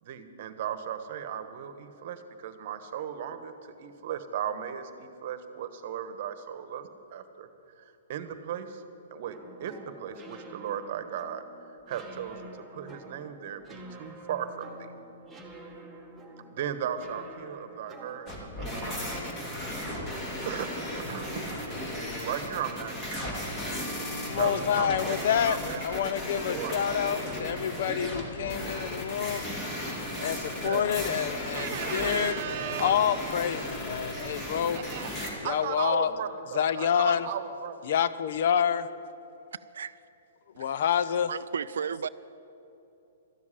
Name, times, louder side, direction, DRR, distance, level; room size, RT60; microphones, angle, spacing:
voice 1, 0.0-3.5 3.8-7.5 8.1-8.8 9.1-11.4 11.9-14.9 16.5-19.0 20.4-21.3 22.2-23.3 24.0-25.8 26.1-26.7 30.3-30.8 31.5-32.9 34.7-37.7, right 9 dB, 50° right, 10 dB, 1.1 m, -36 dB
sound 1, 9.3-21.3, right 1 dB, 5° right, 1.4 m, -48 dB
sound 2, 18.3-35.3, left 1 dB, 20° left, 2.6 m, -35 dB
voice 2, 24.3-25.6 25.8-29.5 30.2-32.4 32.8-34.8 35.4-36.1 36.5-37.3 37.9-38.9 40.6-41.3, left 8 dB, 60° left, 14 dB, 0.6 m, -27 dB
voice 3, 39.5-40.0 40.7-40.8 41.3-42.1, right 7 dB, 80° right, 15 dB, 0.3 m, -34 dB
13.0 x 7.2 x 10.0 m, 3.0 s
hypercardioid pair, 140°, 0 cm